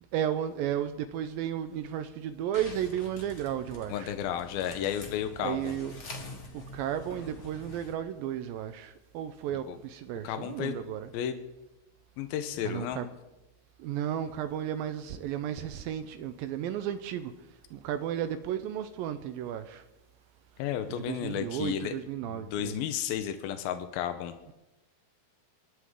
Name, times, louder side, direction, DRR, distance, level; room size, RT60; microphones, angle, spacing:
voice 1, 0.1-4.1 5.4-5.9 6.5-11.1 12.6-13.1 13.8-17.3 17.7-19.8 20.9-22.8, right 10 dB, 85° right, 2.4 m, -33 dB
sound 1, 2.5-7.9, left 1 dB, 40° left, 1.0 m, -46 dB
voice 2, 3.9-5.8 9.7-9.8 10.2-10.7 11.1-11.4 12.2-13.0 20.6-21.9 22.3-24.3, left 10 dB, 85° left, 2.7 m, -33 dB
26.5 x 11.5 x 3.7 m
omnidirectional pair, 4.2 m